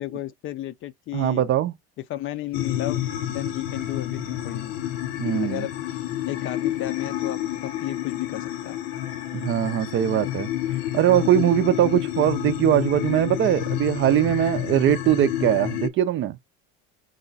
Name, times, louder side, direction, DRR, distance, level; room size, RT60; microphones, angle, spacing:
voice 1, 0.0-1.4 2.1-4.7 5.4-5.7 6.3-8.8, left 13 dB, 40° left, 0.5 m, -33 dB
voice 2, 1.1-1.7 5.2-5.6 9.3-10.5 10.9-16.4, right 12 dB, 40° right, 0.5 m, -21 dB
sound 1, 2.5-15.9, left 12 dB, 90° left, 0.8 m, -29 dB
4.8 x 2.2 x 3.9 m
cardioid pair, 130°, 30 cm